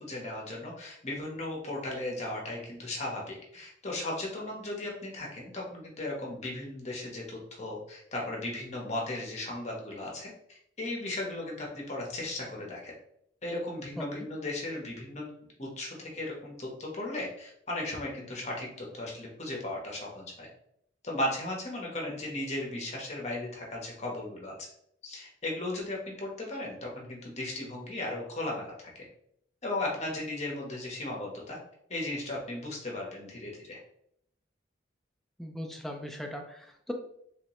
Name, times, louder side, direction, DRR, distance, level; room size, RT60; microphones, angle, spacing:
voice 1, 0.0-10.3 10.8-12.9 13.4-15.3 15.6-20.5 21.0-24.5 25.0-29.1 29.6-31.6 31.9-33.8, left 1 dB, 35° left, -2 dB, 0.9 m, -36 dB
voice 2, 35.4-36.9, left 1 dB, ahead, 2 dB, 0.4 m, -39 dB
3.2 x 2.8 x 3.0 m, 0.71 s
head